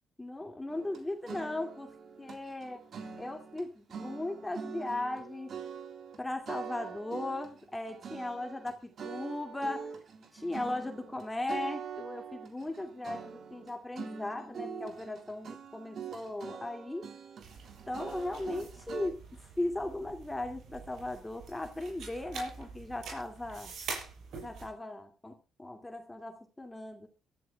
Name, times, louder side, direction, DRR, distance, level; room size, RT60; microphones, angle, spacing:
voice 1, 0.2-2.8 3.2-5.6 6.2-9.9 10.3-17.1 17.9-23.7 24.4-27.1, left 2 dB, 10° left, 5 dB, 2.3 m, -37 dB
sound 1, 0.7-3.6 3.9-6.2 6.5-19.1, right 6 dB, 55° right, 3.4 m, -44 dB
sound 2, 17.4-24.7, right 4 dB, 70° right, 7.3 m, -46 dB
23.0 x 13.5 x 2.3 m, 0.31 s
cardioid pair, 90°, 0 cm